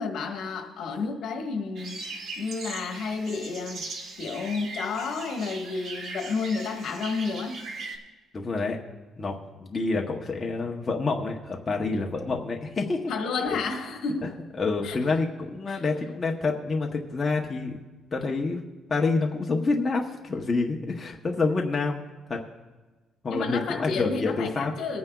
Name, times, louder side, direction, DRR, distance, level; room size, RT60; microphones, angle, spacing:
voice 1, 0.0-3.9 4.2-7.6 13.1-14.3 14.8-15.2 15.7-15.8 23.3-25.0, left 4 dB, 65° left, 3 dB, 1.4 m, -31 dB
sound 1, 1.8-8.0, right 3 dB, 50° right, 1.5 m, -39 dB
voice 2, 8.3-8.8 9.2-13.0 13.5-13.6 14.6-17.8 18.1-18.6 18.9-22.0 22.3-22.4 23.2-24.7, left 3 dB, 25° left, 0 dB, 0.8 m, -27 dB
23.5 x 9.4 x 2.3 m, 1.3 s
cardioid pair, 150°, 0 cm